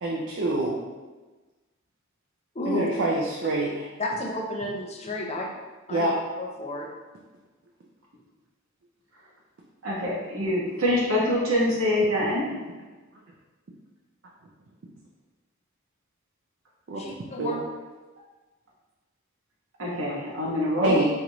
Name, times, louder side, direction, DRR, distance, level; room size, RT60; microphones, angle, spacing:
voice 1, 0.0-0.8 2.7-3.9 5.9-6.1 16.9-17.1 17.4-17.6 20.8-21.0, right 2 dB, 60° right, -2 dB, 0.4 m, -26 dB
voice 2, 2.5-2.9 4.0-5.6 5.9-6.9 17.0-17.6, left 1 dB, 30° left, -1 dB, 0.5 m, -32 dB
voice 3, 9.8-12.5 19.8-21.1, left 1 dB, 85° right, -5 dB, 1.1 m, -25 dB
4.4 x 2.5 x 2.9 m, 1.2 s
head